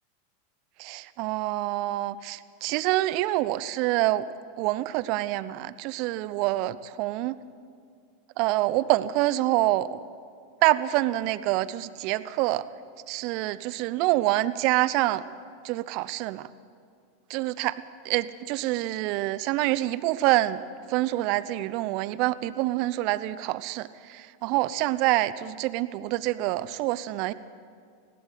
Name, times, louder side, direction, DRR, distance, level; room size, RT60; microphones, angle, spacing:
voice 1, 0.8-4.2 4.6-7.3 8.4-10.0 10.6-12.6 13.1-15.2 15.6-16.5 17.3-27.3, right 16 dB, 55° right, 16 dB, 0.7 m, -26 dB
20.0 x 16.5 x 8.2 m, 2.3 s
hypercardioid pair, 90°, 0 cm